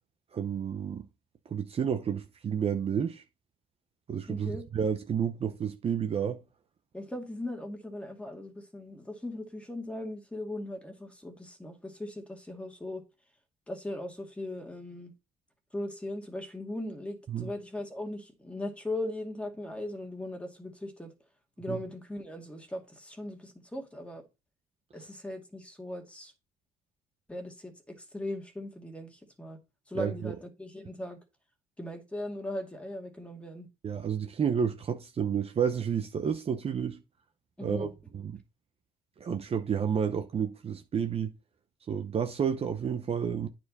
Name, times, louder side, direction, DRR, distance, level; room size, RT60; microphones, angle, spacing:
voice 1, 0.3-1.1 1.5-3.2 4.1-6.4 17.3-17.5 21.7-21.8 29.9-30.3 33.8-37.0 37.6-37.9 38.1-38.4 39.2-41.3 41.9-43.5, right 7 dB, 35° right, 0.8 m, -30 dB
voice 2, 4.3-4.6 6.9-13.0 13.7-15.1 15.7-21.1 21.6-24.2 24.9-26.3 27.3-29.6 29.9-31.2 31.8-33.7 37.6-37.9, left 1 dB, 5° left, 2.2 m, -39 dB
9.3 x 4.6 x 4.2 m
cardioid pair, 110°, 17 cm